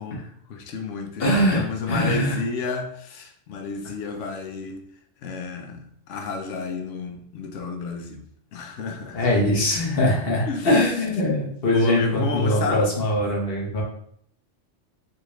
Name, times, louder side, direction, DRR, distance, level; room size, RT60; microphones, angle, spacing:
voice 1, 0.0-4.8 5.2-8.2 8.5-9.4 10.5-10.7 11.7-12.9, left 4 dB, 75° left, 5 dB, 0.9 m, -31 dB
voice 2, 1.2-2.4 9.1-13.8, left 1 dB, 55° left, -1 dB, 1.1 m, -22 dB
3.9 x 2.5 x 3.0 m, 0.65 s
omnidirectional pair, 1.3 m